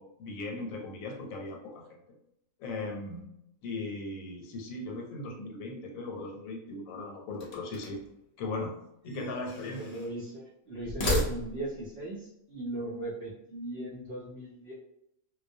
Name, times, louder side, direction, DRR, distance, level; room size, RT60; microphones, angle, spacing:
voice 1, 0.0-2.0 2.6-3.3 3.6-8.0 8.4-8.7 9.0-10.0 12.7-12.9, left 2 dB, 85° left, 1 dB, 1.0 m, -38 dB
sound 1, 7.3-8.1 9.0-10.1 10.8-11.8, left 1 dB, 45° left, 0.5 m, -34 dB
voice 2, 9.7-14.7, right 1 dB, 60° right, -6 dB, 0.7 m, -38 dB
2.2 x 2.2 x 2.5 m, 0.79 s
omnidirectional pair, 1.4 m